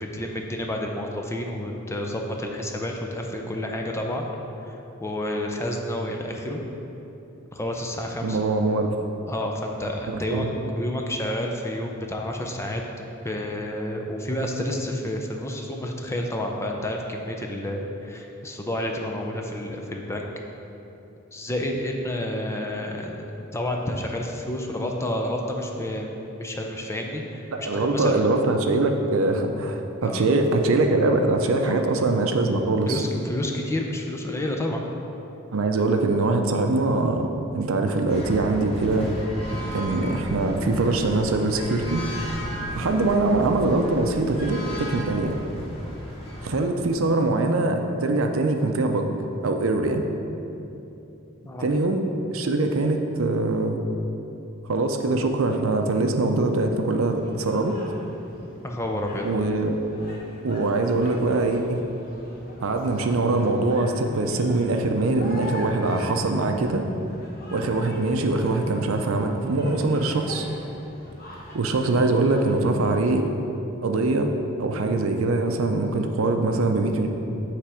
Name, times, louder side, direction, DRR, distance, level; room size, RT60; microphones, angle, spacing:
voice 1, 0.0-4.3 4.6-6.6 7.5-8.4 9.3-10.4 10.7-12.8 13.2-20.3 21.3-23.2 23.5-28.2 30.0-30.2 31.6-31.8 32.9-34.8 39.5-39.6 46.0-46.1 51.5-51.7 58.6-59.3, left 1 dB, 15° left, 1 dB, 0.5 m, -30 dB
voice 2, 8.2-8.9 10.3-10.5 27.5-33.0 35.5-39.1 39.7-42.0 42.7-45.4 46.4-49.1 49.4-50.0 51.6-52.0 52.3-53.8 54.7-57.8 59.2-59.8 60.4-61.8 62.6-66.9 67.5-70.5 71.5-73.2 73.8-74.3 74.6-77.1, right 2 dB, 75° right, 5 dB, 0.5 m, -23 dB
sound 1, 38.1-46.6, equal, 30° left, 1.4 m, -34 dB
sound 2, 57.1-73.2, left 1 dB, 45° left, 1.2 m, -42 dB
8.6 x 3.4 x 4.9 m, 2.9 s
head